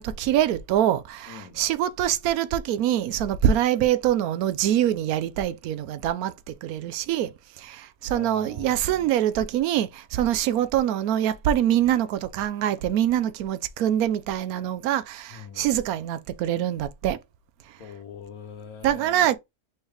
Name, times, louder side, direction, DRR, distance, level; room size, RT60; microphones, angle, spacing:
voice 1, 0.0-17.2 18.8-19.4, right 11 dB, 90° right, 1.1 m, -24 dB
voice 2, 1.3-1.6 8.1-9.3 15.3-15.7 17.8-19.3, left 7 dB, 85° left, 1.2 m, -43 dB
4.4 x 3.3 x 3.2 m
omnidirectional pair, 1.5 m